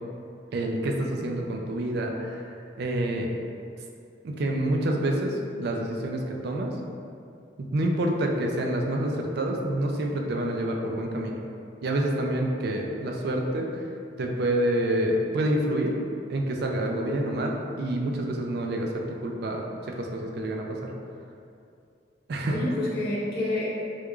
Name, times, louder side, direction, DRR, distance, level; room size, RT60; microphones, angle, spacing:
voice 1, 0.5-2.4 2.8-3.3 4.2-6.7 7.6-11.4 11.8-13.7 14.2-15.9 16.3-19.6 20.0-20.9 22.3-22.6, right 1 dB, 60° right, 1 dB, 0.4 m, -27 dB
voice 2, 1.1-1.5 22.5-23.7, left 1 dB, 65° left, -6 dB, 0.8 m, -29 dB
4.5 x 2.4 x 2.3 m, 2.5 s
head